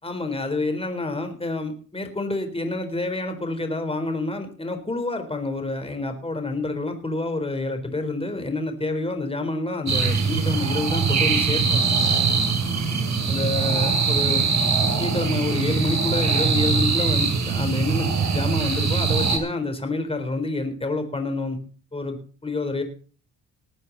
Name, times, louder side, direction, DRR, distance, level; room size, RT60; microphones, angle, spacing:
voice 1, 0.0-11.9 13.3-14.5 15.0-21.6 21.9-22.2 22.4-22.8, left 2 dB, 15° left, 6 dB, 4.0 m, -28 dB
sound 1, 9.9-19.4, right 5 dB, 45° right, 4.6 m, -22 dB
20.0 x 9.1 x 4.1 m, 0.40 s
supercardioid pair, 60°, 37 cm